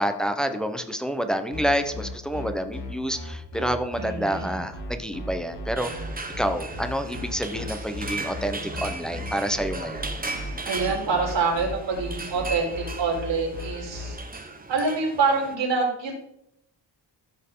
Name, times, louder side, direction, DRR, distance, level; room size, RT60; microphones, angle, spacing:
voice 1, 0.0-5.9 6.4-10.0, equal, ahead, 7 dB, 0.9 m, -28 dB
sound 1, 1.5-14.1, left 1 dB, 75° left, 2.9 m, -36 dB
voice 2, 4.0-4.6 10.6-14.2 14.7-16.2, right 4 dB, 75° right, -2 dB, 4.0 m, -26 dB
sound 2, 5.8-15.5, right 3 dB, 20° right, 1.2 m, -37 dB
14.5 x 6.3 x 3.9 m, 0.77 s
wide cardioid pair, 120°, 44 cm